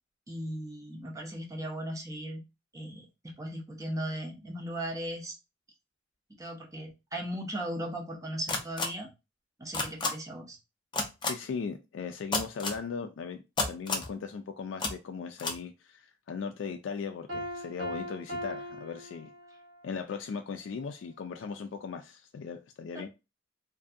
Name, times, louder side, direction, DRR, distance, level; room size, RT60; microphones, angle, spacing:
voice 1, 0.3-2.4 2.7-5.4 6.4-9.1 9.6-10.6 22.9-23.0, right 1 dB, 20° right, 0.6 m, -37 dB
sound 1, 8.5-8.9 9.7-10.1 10.9-11.3 12.3-12.8 13.6-14.1 14.8-14.9 15.4-15.5, left 3 dB, 25° left, 0.5 m, -29 dB
voice 2, 11.3-13.4 13.7-19.3 19.8-23.1, left 5 dB, 75° left, 0.3 m, -38 dB
Piano, 17.3-19.8, equal, 85° right, 1.2 m, -39 dB
2.6 x 2.5 x 2.4 m
head